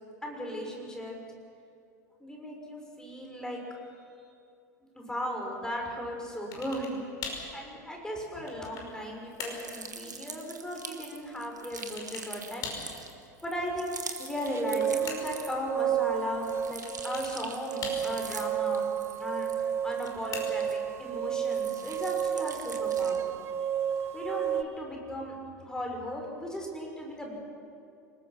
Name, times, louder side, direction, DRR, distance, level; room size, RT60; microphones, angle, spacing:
voice 1, 0.2-1.1 2.2-3.6 4.9-7.0 7.5-12.6 13.4-13.9 14.2-18.8 19.2-23.4 24.1-25.3 25.6-27.3, equal, 5° left, 0 dB, 6.7 m, -37 dB
sound 1, 6.5-7.0 7.2-7.5 8.1-9.0 9.4-9.7 11.8-12.3 12.6-12.9 14.3-15.4 16.8-17.4 17.8-18.4 19.8-20.8, left 4 dB, 40° left, 5.7 m, -40 dB
sound 2, 9.3-15.8 16.2-21.1 21.4-23.3, right 4 dB, 80° right, 1.8 m, -44 dB
sound 3, 14.3-24.6, right 9 dB, 25° right, 1.2 m, -31 dB
29.0 x 20.5 x 6.2 m, 2.5 s
figure-of-eight pair, 80°, 9 cm